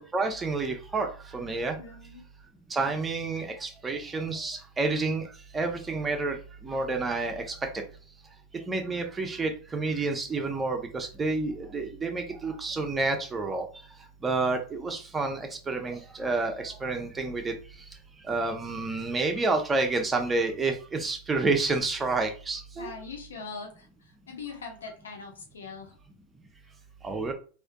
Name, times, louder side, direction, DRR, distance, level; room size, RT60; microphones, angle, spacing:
voice 1, 0.0-1.8 2.7-5.3 5.5-6.4 6.6-7.6 8.7-13.6 14.2-17.5 18.3-22.9 27.0-27.3, right 3 dB, 20° right, 4 dB, 0.7 m, -29 dB
voice 2, 1.8-2.2 22.8-25.9, left 4 dB, 90° left, 2 dB, 0.8 m, -42 dB
3.4 x 2.6 x 2.3 m, 0.38 s
hypercardioid pair, 100°, 0 cm